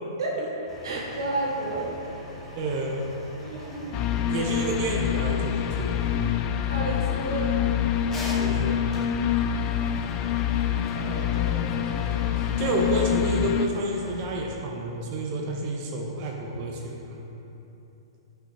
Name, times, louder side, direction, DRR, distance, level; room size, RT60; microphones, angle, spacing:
sound 1, 0.7-14.3, equal, 15° left, 1.5 m, -42 dB
voice 1, 0.8-2.4 3.4-4.0 6.7-7.7 10.6-12.5, right 2 dB, 65° right, -3 dB, 1.4 m, -33 dB
voice 2, 2.5-3.1 4.3-6.5 8.4-9.1 12.4-17.3, right 1 dB, 40° right, 0 dB, 0.8 m, -30 dB
sound 2, 3.9-13.7, left 10 dB, 30° left, 0.4 m, -26 dB
8.5 x 5.6 x 3.3 m, 2.9 s
figure-of-eight pair, 110°, 3 cm